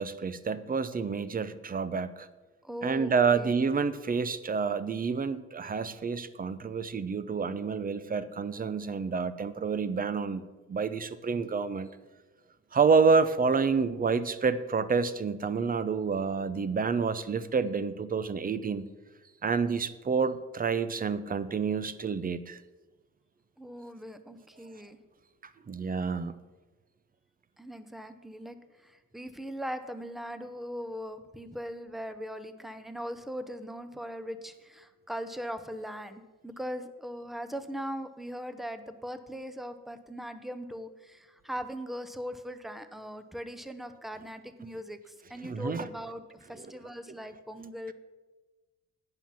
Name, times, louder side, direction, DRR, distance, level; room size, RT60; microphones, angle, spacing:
voice 1, 0.0-2.3 2.8-10.4 10.7-11.9 12.7-18.8 19.4-22.6 25.7-26.3 45.4-45.9 46.6-46.7, right 5 dB, 30° right, 14 dB, 0.6 m, -28 dB
voice 2, 2.6-3.6 23.6-25.0 27.6-47.9, equal, ahead, 10 dB, 0.8 m, -40 dB
9.8 x 5.8 x 7.3 m, 1.2 s
cardioid pair, 90°, 30 cm